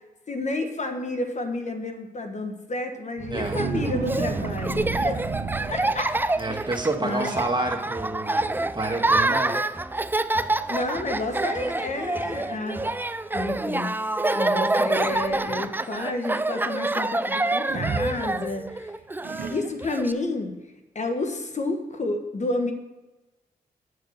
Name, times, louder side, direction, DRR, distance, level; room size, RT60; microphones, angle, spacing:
voice 1, 0.3-5.2 5.7-6.1 7.0-7.4 10.7-12.9 13.3-18.9 19.5-20.5 20.9-22.7, left 2 dB, 45° left, 5 dB, 1.3 m, -30 dB
sound 1, 3.2-6.5 7.1-7.3 7.7-8.1 8.3-8.4 9.2-9.3 9.8-9.9 10.5-10.9 11.7-11.8 14.7-15.7 17.7-18.7 19.2-20.0, right 5 dB, 65° right, 0.9 m, -33 dB
Laughter, 3.3-20.1, right 2 dB, 10° right, 0.4 m, -27 dB
voice 2, 3.3-3.6 6.4-9.6, right 2 dB, 30° right, 3 dB, 1.6 m, -29 dB
9.0 x 4.9 x 6.6 m, 1.1 s
cardioid pair, 50°, 16 cm